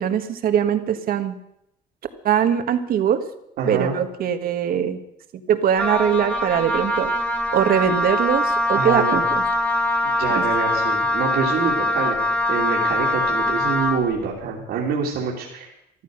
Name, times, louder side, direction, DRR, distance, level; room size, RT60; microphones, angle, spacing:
voice 1, 0.0-1.3 2.2-3.2 3.6-5.0 5.5-7.1 7.5-9.2 10.3-10.4, right 9 dB, 60° right, 9 dB, 1.5 m, -21 dB
voice 2, 3.6-3.9 8.7-9.2 10.0-15.7, right 6 dB, 75° right, -4 dB, 3.0 m, -26 dB
Wind instrument woodwind instrument, 5.8-14.0, left 2 dB, 5° left, 1.9 m, -22 dB
14.5 x 12.5 x 6.5 m, 0.78 s
cardioid pair, 110°, 17 cm